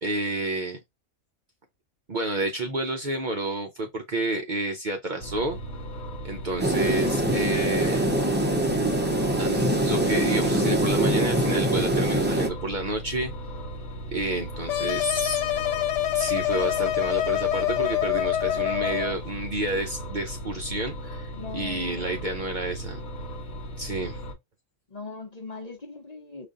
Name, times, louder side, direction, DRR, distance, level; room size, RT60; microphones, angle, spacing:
voice 1, 0.0-0.8 2.1-5.6 6.2-8.1 9.4-13.3 14.1-15.4 16.1-23.0 23.8-24.2, right 2 dB, 50° right, 0.7 m, -30 dB
sound 1, 5.2-24.3, right 1 dB, 60° left, 1.1 m, -37 dB
sound 2, 6.6-12.5, right 1 dB, 20° right, 0.3 m, -24 dB
sound 3, 14.7-19.2, left 13 dB, 75° left, 0.9 m, -26 dB
voice 2, 21.3-22.2 24.9-26.5, left 3 dB, 35° left, 0.9 m, -40 dB
5.0 x 2.5 x 2.5 m
omnidirectional pair, 1.3 m